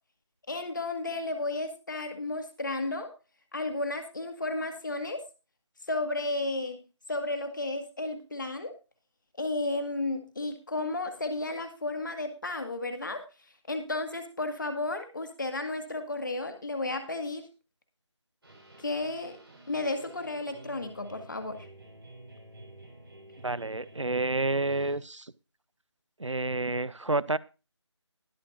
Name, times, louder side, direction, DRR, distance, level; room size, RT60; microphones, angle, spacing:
voice 1, 0.5-3.1 3.5-5.2 5.9-6.8 7.1-8.7 9.4-13.2 13.7-17.5 18.8-19.4 19.7-21.6, left 2 dB, 40° left, 7 dB, 1.9 m, -33 dB
sound 1, 18.4-25.0, right 1 dB, 55° right, 5.2 m, -50 dB
voice 2, 23.4-25.3 26.2-27.4, right 2 dB, 85° right, 21 dB, 0.7 m, -29 dB
20.5 x 7.5 x 2.6 m, 0.31 s
figure-of-eight pair, 160°, 15 cm